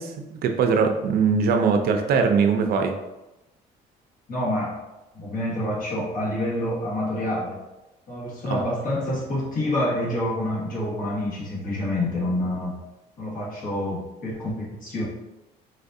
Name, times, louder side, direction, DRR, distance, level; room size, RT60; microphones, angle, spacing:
voice 1, 0.0-2.9 8.5-8.6, right 5 dB, 65° right, 5 dB, 0.5 m, -21 dB
voice 2, 4.3-4.7 5.1-7.6 8.1-12.8 13.2-15.0, left 1 dB, 55° left, -6 dB, 1.5 m, -27 dB
4.0 x 2.5 x 2.6 m, 0.99 s
cardioid pair, 110°, 17 cm